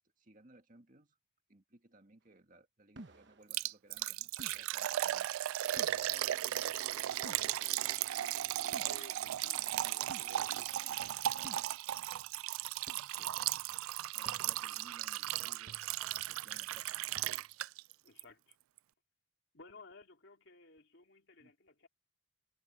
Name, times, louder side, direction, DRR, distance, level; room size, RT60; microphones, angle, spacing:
voice 1, 0.2-1.2 1.5-5.3 13.1-13.5 14.1-15.8 16.3-17.2 21.4-21.5, right 1 dB, 40° right, 2.0 m, -62 dB
sound 1, 3.0-3.4 4.4-4.7 5.8-6.0 7.2-7.6 8.7-8.9 10.1-10.4 11.4-11.7 12.9-13.0 14.3-14.6 15.7-16.1 17.2-17.6, right 1 dB, 55° right, 1.1 m, -53 dB
Liquid, 3.5-17.9 18.2-18.3 18.8-18.9, right 13 dB, 80° right, 0.3 m, -36 dB
voice 2, 5.7-11.2 18.0-18.6 19.5-21.9, left 2 dB, 55° left, 3.0 m, -57 dB
head